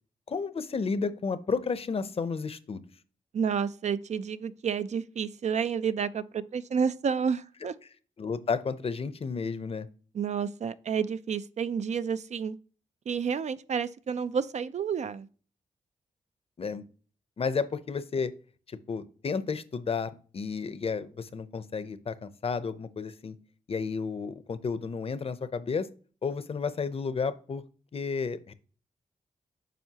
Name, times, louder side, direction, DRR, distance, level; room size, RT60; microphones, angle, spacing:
voice 1, 0.3-2.8 8.2-9.9 16.6-16.8 17.4-18.3 18.9-23.3 23.7-25.9 26.2-27.6 27.9-28.5, left 5 dB, 45° left, 0.6 m, -32 dB
voice 2, 3.3-7.7 10.1-12.6 13.1-15.3, right 6 dB, 60° right, 0.4 m, -30 dB
9.1 x 5.5 x 2.8 m
wide cardioid pair, 95°, 13 cm